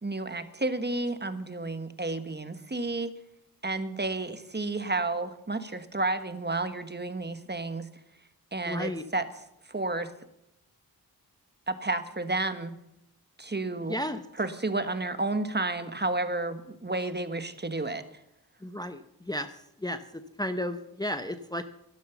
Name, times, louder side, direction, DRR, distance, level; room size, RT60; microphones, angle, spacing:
voice 1, 0.0-3.1 3.6-7.9 8.5-9.3 9.7-10.1 11.7-12.7 13.4-14.0 14.4-18.0, right 2 dB, 25° right, 10 dB, 1.3 m, -31 dB
voice 2, 8.7-9.0 13.9-14.2 18.6-19.5 19.8-21.7, left 1 dB, 10° left, 9 dB, 0.8 m, -33 dB
12.0 x 11.5 x 7.0 m, 0.81 s
cardioid pair, 55°, 38 cm